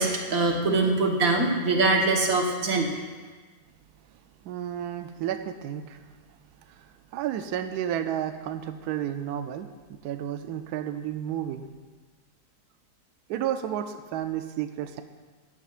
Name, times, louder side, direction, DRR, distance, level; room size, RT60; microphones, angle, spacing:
voice 1, 0.0-2.9, right 3 dB, 60° right, 0 dB, 1.6 m, -23 dB
voice 2, 4.4-6.4 6.7-11.7 13.3-15.0, right 10 dB, 75° right, 7 dB, 1.1 m, -32 dB
14.5 x 10.0 x 2.4 m, 1.4 s
omnidirectional pair, 1.8 m